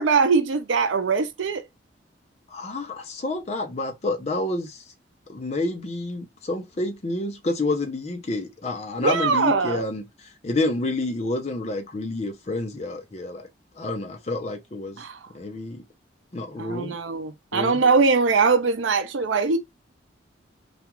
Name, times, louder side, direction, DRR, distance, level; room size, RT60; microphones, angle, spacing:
voice 1, 0.0-1.6 9.0-9.8 15.0-15.2 16.6-19.6, right 4 dB, 85° right, 0.5 m, -21 dB
voice 2, 2.5-4.8 5.3-10.0 10.4-13.5 13.8-15.0 15.3-15.8 16.3-16.9 17.5-17.8, left 2 dB, 35° left, 0.5 m, -29 dB
2.4 x 2.3 x 2.9 m
head